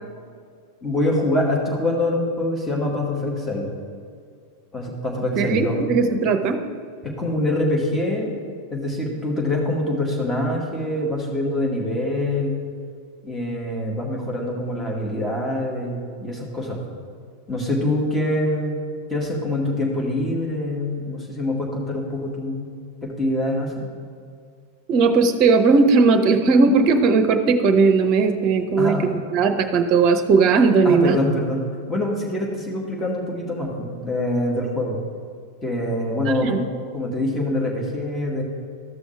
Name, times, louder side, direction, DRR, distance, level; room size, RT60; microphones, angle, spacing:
voice 1, 0.8-3.7 4.7-5.8 7.0-8.3 8.7-12.6 13.2-16.8 17.5-18.8 19.1-22.7 23.0-23.9 28.8-29.0 30.8-35.0 35.6-36.6 36.9-38.4, left 1 dB, 15° left, -2 dB, 2.0 m, -25 dB
voice 2, 5.4-6.6 24.9-29.0 29.3-31.1 36.4-36.6, right 4 dB, 40° right, 7 dB, 0.8 m, -17 dB
13.5 x 6.2 x 3.4 m, 2.2 s
figure-of-eight pair, 90°, 0 cm